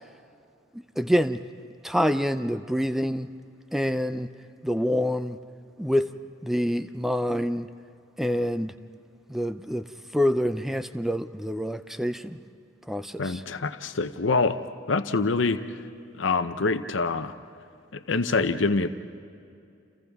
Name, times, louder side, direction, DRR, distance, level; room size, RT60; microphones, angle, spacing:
voice 1, 0.7-1.4 1.8-3.3 3.7-4.3 4.6-5.4 5.8-6.1 6.4-7.7 8.2-8.7 9.3-9.8 10.1-12.4 12.9-13.4, equal, ahead, 10 dB, 0.5 m, -26 dB
voice 2, 13.2-14.6 14.9-15.6 16.2-17.3 17.9-18.9, left 3 dB, 80° left, 10 dB, 0.8 m, -25 dB
30.0 x 29.0 x 3.6 m, 2.5 s
head